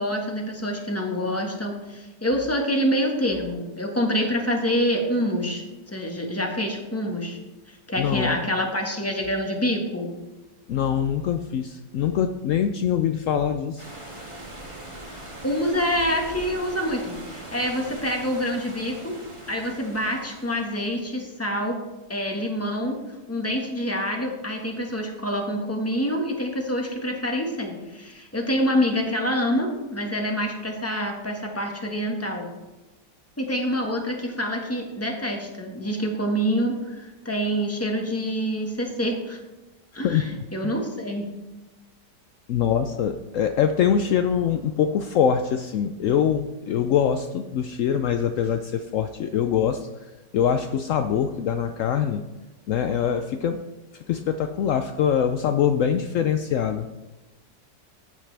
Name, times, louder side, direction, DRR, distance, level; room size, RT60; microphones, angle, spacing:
voice 1, 0.0-7.4 7.7-10.1 15.4-19.1 19.5-21.8 22.1-23.0 23.3-32.5 33.4-39.4 39.9-41.3, equal, 10° left, 1 dB, 1.4 m, -26 dB
voice 2, 8.0-8.4 10.7-13.8 40.0-40.2 40.6-40.7 42.5-49.9 50.3-52.2 52.7-53.6 53.9-56.9, left 8 dB, 75° left, 8 dB, 0.7 m, -23 dB
sound 1, 13.8-21.0, right 1 dB, 15° right, 1.8 m, -41 dB
14.5 x 8.4 x 3.4 m, 1.1 s
omnidirectional pair, 1.9 m